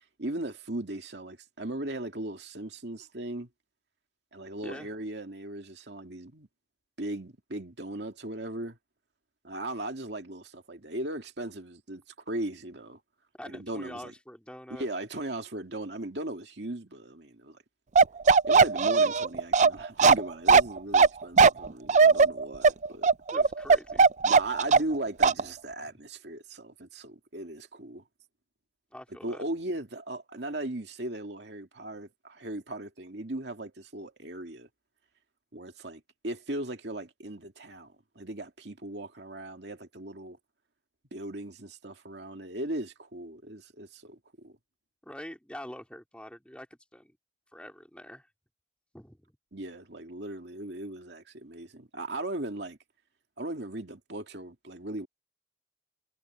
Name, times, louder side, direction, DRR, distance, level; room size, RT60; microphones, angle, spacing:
voice 1, 0.2-3.5 4.3-6.5 7.0-8.8 9.4-13.0 13.5-14.1 14.7-17.6 18.4-23.1 24.2-28.0 29.2-34.7 35.5-40.4 41.1-44.5 49.5-52.8 53.4-55.1, right 1 dB, 65° right, 2.5 m, -38 dB
voice 2, 13.4-14.9 23.3-24.1 25.8-25.9 28.9-29.4 45.0-46.7 46.9-47.2 47.5-48.3 48.9-49.2, equal, 5° left, 3.1 m, -44 dB
Bark, 18.0-25.0 25.2-25.4, right 4 dB, 40° right, 0.4 m, -19 dB
head